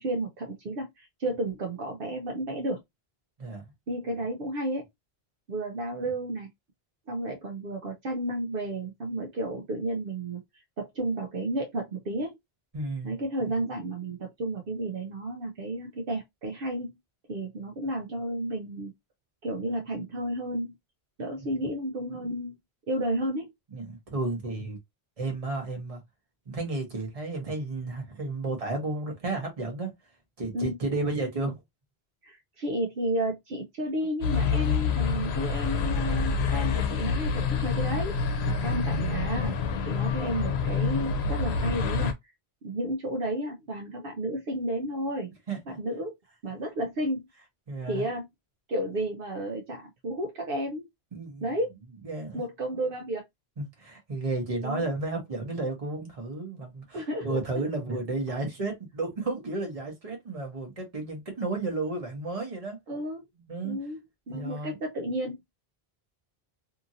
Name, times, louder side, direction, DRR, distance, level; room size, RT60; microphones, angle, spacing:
voice 1, 0.0-2.8 3.9-4.9 5.5-6.5 7.1-12.4 13.0-16.9 17.3-18.9 19.4-20.7 21.2-22.6 22.9-23.5 30.5-30.8 32.2-39.6 39.8-42.1 42.6-45.3 45.8-46.1 46.4-47.2 47.9-48.3 48.7-50.8 51.4-51.7 52.3-53.2 54.6-54.9 56.9-57.4 62.9-63.2 63.6-64.0 64.3-65.4, right 1 dB, 65° right, 0.8 m, -32 dB
voice 2, 12.7-13.2 21.4-21.5 23.7-24.8 25.2-26.0 26.5-29.9 30.4-31.6 38.4-38.9 45.5-45.8 47.7-48.1 51.1-51.5 52.0-52.4 53.6-62.8 63.5-63.8 64.3-64.8, right 2 dB, 35° right, 1.0 m, -32 dB
sound 1, 34.2-42.1, left 5 dB, 85° left, 0.9 m, -27 dB
2.8 x 2.6 x 2.5 m
omnidirectional pair, 1.1 m